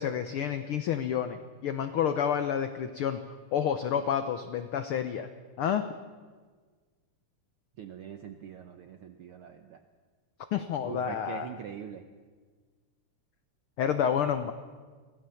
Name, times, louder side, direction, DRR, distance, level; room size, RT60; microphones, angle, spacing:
voice 1, 0.0-5.3 5.6-5.8 10.5-11.5 13.8-14.5, left 8 dB, 85° left, 9 dB, 1.2 m, -29 dB
voice 2, 7.8-9.8 10.8-12.0, right 9 dB, 75° right, 7 dB, 1.3 m, -43 dB
24.5 x 16.5 x 7.0 m, 1.5 s
omnidirectional pair, 3.5 m